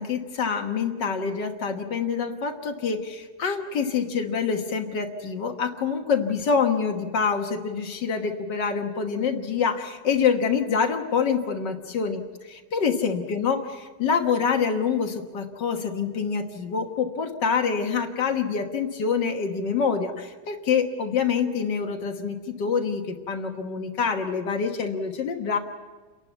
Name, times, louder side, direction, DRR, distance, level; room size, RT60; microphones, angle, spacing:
voice 1, 0.0-25.6, left 6 dB, 80° left, 4 dB, 2.0 m, -26 dB
29.5 x 11.5 x 8.1 m, 1.3 s
omnidirectional pair, 1.9 m